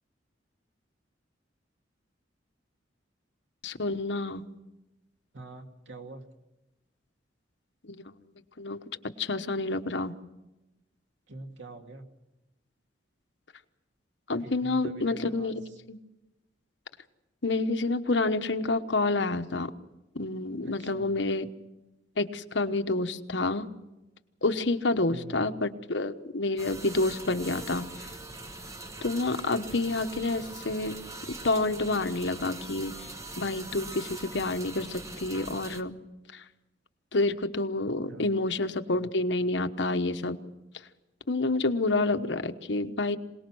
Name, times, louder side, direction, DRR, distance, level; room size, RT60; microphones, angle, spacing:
voice 1, 3.6-4.6 7.8-8.0 8.6-8.8 9.2-10.1 14.3-15.6 15.9-16.0 17.4-19.7 20.1-21.5 22.2-23.7 24.4-27.8 29.0-31.0 31.4-33.1 33.4-35.9 36.3-36.4 37.1-40.4 41.3-43.2, left 2 dB, 65° left, 8 dB, 1.2 m, -28 dB
voice 2, 5.3-6.2 11.3-12.0 14.4-15.8 20.6-21.2 25.1-25.5 38.1-38.3, right 3 dB, 75° right, 4 dB, 2.4 m, -45 dB
sound 1, 26.6-35.8, right 2 dB, 15° right, 1.2 m, -42 dB
26.5 x 19.0 x 6.3 m, 0.99 s
head